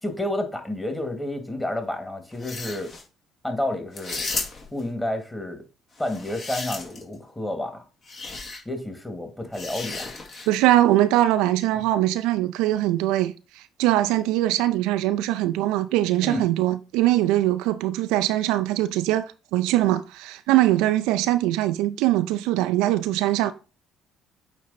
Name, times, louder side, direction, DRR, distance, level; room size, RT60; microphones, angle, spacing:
voice 1, 0.0-2.9 3.4-4.3 4.7-5.6 6.0-7.8 8.7-10.1 16.2-16.5, left 1 dB, 15° left, 2.0 m, -30 dB
sound 1, 2.3-3.0 3.9-4.8 6.0-7.1 8.1-8.6 9.5-10.6, left 3 dB, 45° left, 2.1 m, -34 dB
voice 2, 10.5-23.5, right 14 dB, 70° right, 0.4 m, -22 dB
8.6 x 3.0 x 4.1 m
hypercardioid pair, 50°, 0 cm